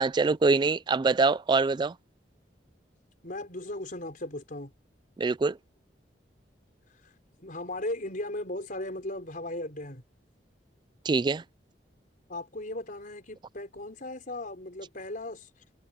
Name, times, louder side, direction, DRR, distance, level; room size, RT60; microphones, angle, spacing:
voice 1, 0.0-1.9 5.2-5.6 11.0-11.4, right 4 dB, 25° right, 0.3 m, -24 dB
voice 2, 3.2-4.7 7.4-10.0 12.3-15.5, left 1 dB, 50° left, 4.6 m, -37 dB
head